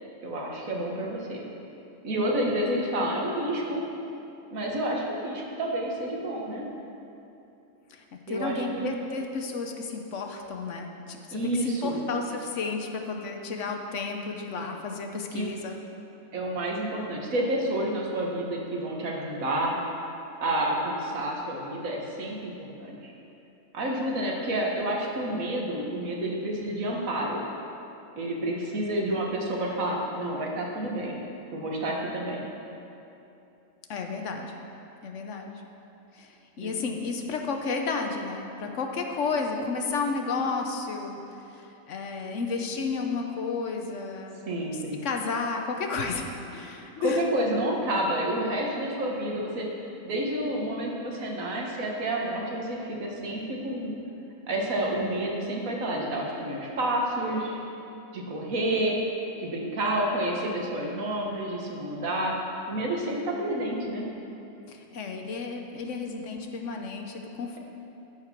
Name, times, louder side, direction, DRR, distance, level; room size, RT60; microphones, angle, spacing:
voice 1, 0.2-1.5 2.0-3.8 4.5-6.7 8.3-8.9 11.3-12.0 15.3-15.5 16.3-19.8 20.4-23.1 23.7-27.4 28.2-31.2 31.5-32.4 36.6-36.8 44.5-45.0 47.0-49.7 50.1-53.9 54.5-57.6 58.1-59.0 59.4-62.4 62.7-64.1, right 1 dB, 75° right, -1 dB, 1.8 m, -29 dB
voice 2, 7.9-15.8 33.9-34.6 35.0-35.6 36.1-41.2 41.5-44.4 44.7-47.2 64.7-67.6, left 4 dB, 65° left, 3 dB, 1.1 m, -32 dB
13.5 x 4.9 x 5.9 m, 2.8 s
omnidirectional pair, 1.4 m